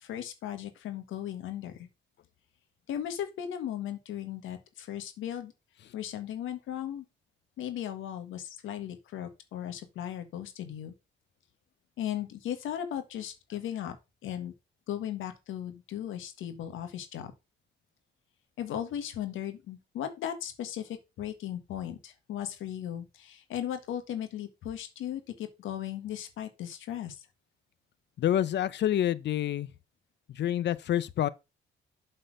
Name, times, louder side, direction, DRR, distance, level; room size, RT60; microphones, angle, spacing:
voice 1, 0.0-1.9 2.9-5.5 5.9-7.0 7.6-10.9 12.0-14.0 14.2-14.5 14.9-17.3 18.6-27.2, left 10 dB, 85° left, 1.6 m, -37 dB
voice 2, 28.2-29.7 30.4-31.3, left 11 dB, 60° left, 0.7 m, -27 dB
7.9 x 4.3 x 6.4 m
cardioid pair, 90°, 20 cm